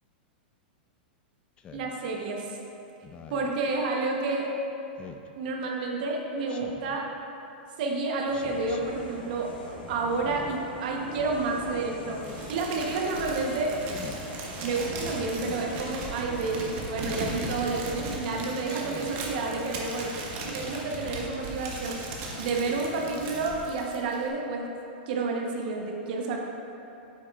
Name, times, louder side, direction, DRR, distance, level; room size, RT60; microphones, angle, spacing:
Speech synthesizer, 1.6-1.9 3.0-3.5 5.0-5.3 6.5-7.0 8.3-8.8 10.1-10.6 11.9-12.4 13.8-14.2 15.4-15.7 17.0-17.4 18.6-19.2, left 6 dB, 20° left, 0.4 m, -45 dB
voice 1, 1.7-2.6 3.3-4.5 5.4-7.1 7.8-12.2 12.5-13.7 14.6-20.1 20.5-22.0 22.4-24.7 25.1-26.4, right 3 dB, 55° right, 0 dB, 0.9 m, -30 dB
sound 1, 8.3-23.7, left 1 dB, 85° left, 1.4 m, -43 dB
Crumpling crinkling, 12.2-24.3, right 3 dB, 40° right, 1.1 m, -38 dB
8.6 x 8.4 x 2.4 m, 2.9 s
supercardioid pair, 150°, 5 cm